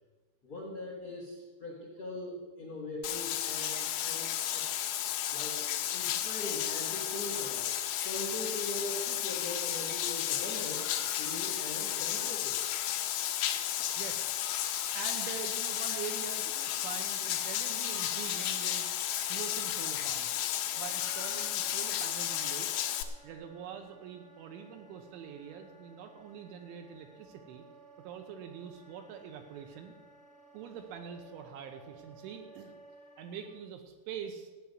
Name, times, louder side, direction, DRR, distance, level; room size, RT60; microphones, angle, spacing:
voice 1, 0.4-4.8 5.3-5.6 5.9-7.7 8.0-12.6, left 1 dB, 55° left, -1 dB, 1.8 m, -41 dB
Bathtub (filling or washing), 3.0-23.0, left 11 dB, 75° left, 2.7 m, -33 dB
voice 2, 14.0-18.9 19.2-20.3 20.8-22.9 23.2-27.6 28.0-29.9 30.5-32.7 33.2-34.5, right 8 dB, 75° right, 6 dB, 3.1 m, -44 dB
Wind instrument woodwind instrument, 20.7-33.5, right 3 dB, ahead, 1.0 m, -56 dB
14.0 x 6.3 x 9.7 m, 1.3 s
omnidirectional pair, 5.9 m